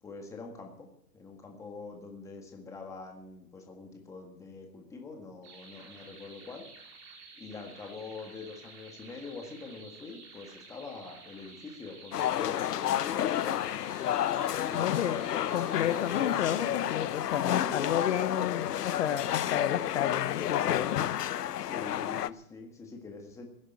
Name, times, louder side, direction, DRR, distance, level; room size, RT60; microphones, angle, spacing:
voice 1, 0.0-6.7 7.4-13.7 14.6-16.0 17.6-18.1 21.6-23.5, left 4 dB, 5° left, 2 dB, 1.7 m, -44 dB
sound 1, 5.4-16.4, right 3 dB, 25° right, 3.9 m, -52 dB
sound 2, 12.1-22.3, left 11 dB, 85° left, 0.9 m, -30 dB
voice 2, 14.7-15.2 15.5-21.0, left 10 dB, 50° left, 11 dB, 1.1 m, -31 dB
16.0 x 10.0 x 8.6 m, 0.76 s
hypercardioid pair, 165°, 46 cm